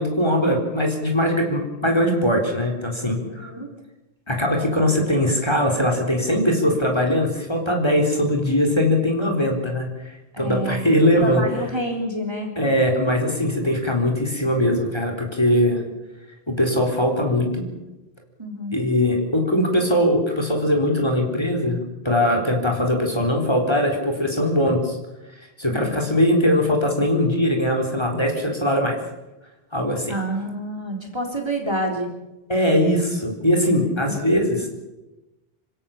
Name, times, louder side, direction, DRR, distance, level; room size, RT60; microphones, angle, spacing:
voice 1, 0.0-3.5 4.3-11.4 12.6-15.8 16.5-17.7 18.7-21.8 22.0-25.0 25.4-29.0 29.7-30.1 32.5-34.7, left 1 dB, 25° left, 2 dB, 4.0 m, -21 dB
voice 2, 3.2-3.7 10.3-12.5 18.4-18.8 25.7-25.9 30.1-32.1 34.0-34.1, right 1 dB, 25° right, 1 dB, 3.9 m, -28 dB
27.0 x 16.5 x 7.3 m, 1.0 s
omnidirectional pair, 1.1 m